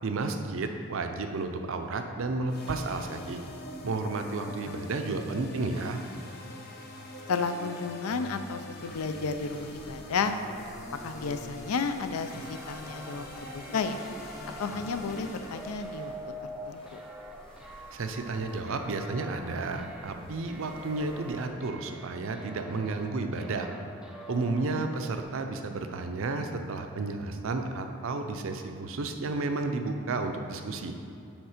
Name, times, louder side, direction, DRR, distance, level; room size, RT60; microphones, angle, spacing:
voice 1, 0.0-3.4 3.8-6.0 17.9-23.7 24.3-30.9, right 3 dB, 65° right, 6 dB, 0.5 m, -32 dB
sound 1, 2.5-16.0, left 1 dB, 45° left, 0.7 m, -44 dB
voice 2, 7.3-10.3 11.0-14.0 14.6-16.1 16.7-17.0 24.7-24.8, left 5 dB, 85° left, 9 dB, 0.4 m, -32 dB
sound 2, 8.7-21.5, left 1 dB, 25° left, 1.0 m, -51 dB
sound 3, 12.3-25.2, right 1 dB, 5° right, 0.4 m, -45 dB
7.2 x 3.7 x 5.0 m, 2.6 s
head